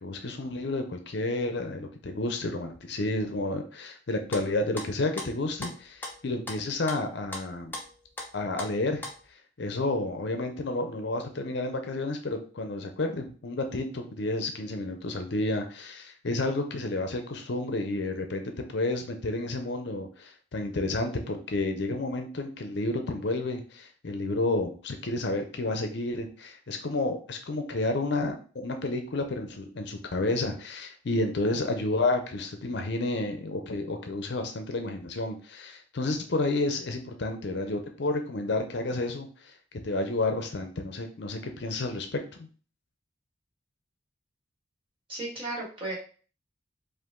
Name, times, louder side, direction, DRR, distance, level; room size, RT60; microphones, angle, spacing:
voice 1, 0.0-7.8 8.3-9.0 9.6-39.5 39.8-42.5, left 2 dB, 55° left, 5 dB, 0.5 m, -31 dB
sound 1, 4.3-6.6 6.9-8.3 8.6-9.2, left 2 dB, 10° left, 0.7 m, -39 dB
voice 2, 45.1-45.9, right 2 dB, 25° right, -6 dB, 1.8 m, -34 dB
4.9 x 2.5 x 3.7 m, 0.40 s
head